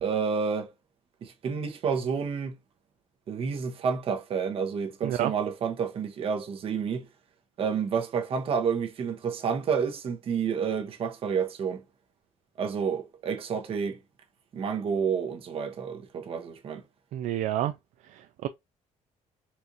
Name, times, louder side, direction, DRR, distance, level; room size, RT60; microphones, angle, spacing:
voice 1, 0.0-0.7 1.2-2.6 3.3-7.1 7.6-11.8 12.6-14.0 14.5-16.8, right 6 dB, 45° right, 0.9 m, -29 dB
voice 2, 17.1-17.7 18.0-18.5, right 12 dB, 70° right, 0.4 m, -29 dB
4.4 x 2.5 x 2.6 m
cardioid pair, 150°, 13 cm